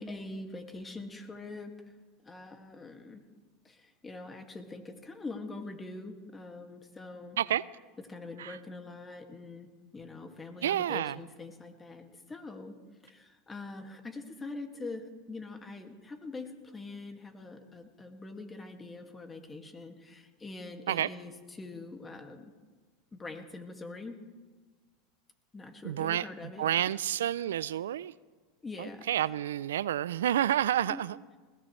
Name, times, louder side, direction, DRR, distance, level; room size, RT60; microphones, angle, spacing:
voice 1, 0.0-1.7 2.2-3.2 3.6-7.4 8.1-9.7 9.9-12.8 13.0-22.5 23.1-24.2 25.5-26.7 28.6-29.1 30.9-31.0, left 3 dB, 20° left, 2.1 m, -43 dB
voice 2, 10.6-11.2 20.9-21.1 25.8-28.1 28.8-31.2, right 11 dB, 85° right, 0.4 m, -30 dB
20.5 x 18.5 x 3.3 m
hypercardioid pair, 100°, 0 cm